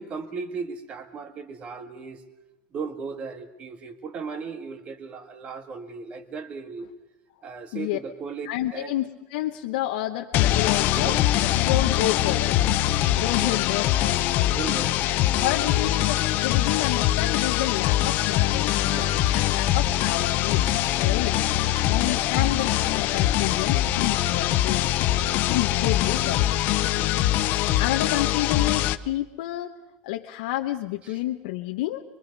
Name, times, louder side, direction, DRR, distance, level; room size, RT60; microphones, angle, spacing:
voice 1, 0.0-2.2 2.7-6.9 7.4-8.5 8.7-8.9 10.9-11.2 13.4-13.7 14.5-15.1 18.9-19.6 21.0-21.2 26.9-27.3 31.0-31.2, right 5 dB, 25° right, 8 dB, 1.8 m, -36 dB
voice 2, 8.4-11.1 11.5-12.6 13.1-14.9 15.3-18.7 19.3-20.7 21.0-21.4 21.9-24.9 25.5-26.4 27.6-29.7 30.0-32.0, left 14 dB, 65° left, 3 dB, 1.1 m, -29 dB
sound 1, 10.3-29.0, left 14 dB, 35° left, 0.7 m, -23 dB
24.5 x 24.0 x 5.4 m, 1.0 s
supercardioid pair, 175°, 5 cm